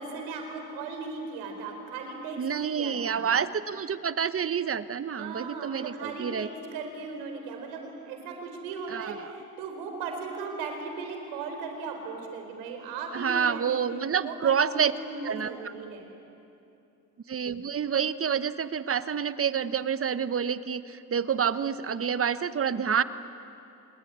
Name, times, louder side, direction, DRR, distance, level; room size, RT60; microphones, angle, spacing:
voice 1, 0.0-3.3 5.2-13.8 14.2-16.1, right 4 dB, 90° right, 4 dB, 4.5 m, -37 dB
voice 2, 2.4-6.5 8.9-9.3 13.1-14.9 15.2-15.7 17.3-23.0, right 7 dB, 40° right, 13 dB, 1.1 m, -28 dB
26.5 x 21.5 x 9.6 m, 2.7 s
supercardioid pair, 70°, 36 cm